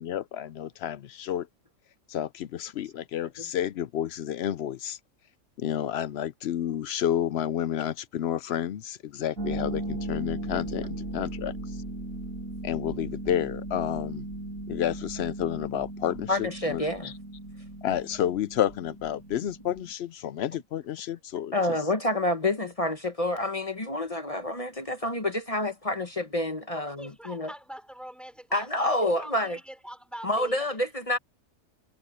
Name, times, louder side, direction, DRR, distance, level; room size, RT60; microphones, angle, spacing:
voice 1, 0.0-1.5 2.1-5.0 5.6-11.5 12.6-14.2 14.7-17.1 17.8-21.5, left 10 dB, 65° left, 0.7 m, -30 dB
Harp, 9.4-19.9, right 2 dB, 80° right, 4.8 m, -37 dB
voice 2, 16.3-17.1 21.5-27.5 28.5-29.6 30.2-31.2, left 1 dB, 30° left, 1.2 m, -28 dB
voice 3, 27.0-30.6, right 1 dB, ahead, 4.9 m, -43 dB
omnidirectional pair, 1.4 m